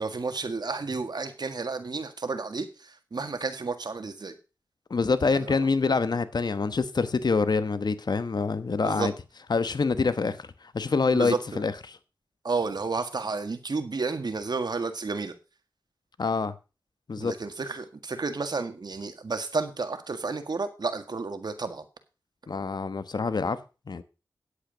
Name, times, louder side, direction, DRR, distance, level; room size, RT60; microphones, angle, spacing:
voice 1, 0.0-4.4 5.3-5.6 8.8-9.1 11.1-11.6 12.4-15.3 17.2-21.9, right 4 dB, 65° right, 1.7 m, -31 dB
voice 2, 4.9-9.1 9.5-10.5 10.7-12.0 16.2-16.5 17.1-17.3 22.5-23.6 23.9-24.0, left 4 dB, 65° left, 1.1 m, -26 dB
9.9 x 8.4 x 5.0 m
cardioid pair, 50°, 8 cm